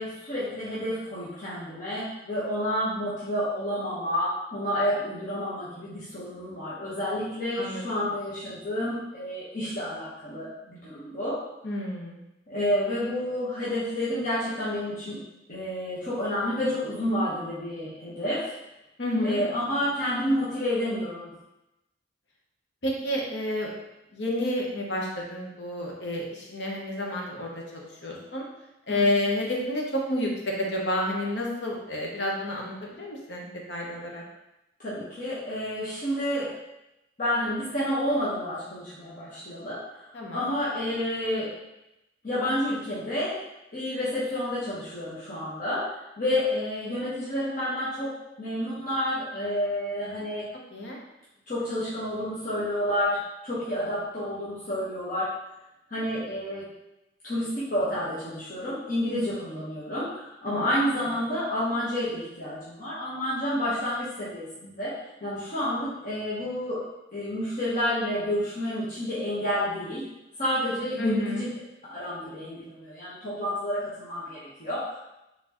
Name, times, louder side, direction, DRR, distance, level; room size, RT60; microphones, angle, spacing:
voice 1, 0.0-11.3 12.5-15.2 15.5-18.5 19.2-21.3 28.9-29.0 34.8-36.5 37.2-40.1 40.3-41.5 42.2-43.4 43.7-45.8 46.2-48.1 48.4-50.5 51.5-53.2 53.4-55.3 55.9-56.6 57.2-64.9 65.2-66.8 67.1-70.0 70.4-71.5 71.9-75.0, left 1 dB, 50° left, -10 dB, 1.2 m, -29 dB
voice 2, 11.6-12.2 19.0-19.4 22.8-23.7 24.1-28.5 28.9-30.3 30.6-34.2 40.1-40.5 50.7-51.0 60.5-60.7 71.0-71.5, left 1 dB, 70° left, -1 dB, 1.0 m, -30 dB
4.2 x 3.8 x 3.0 m, 0.91 s
head